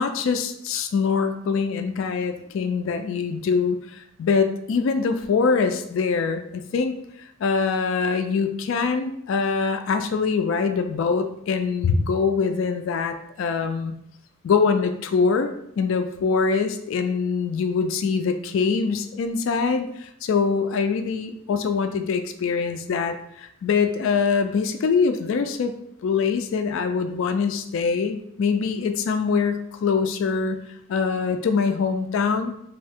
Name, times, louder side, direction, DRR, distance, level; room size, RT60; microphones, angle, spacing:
voice 1, 0.0-6.9 7.4-14.0 14.4-25.7 26.0-30.6 30.9-32.5, left 5 dB, 70° left, 8 dB, 0.3 m, -23 dB
3.4 x 2.7 x 3.4 m, 0.75 s
head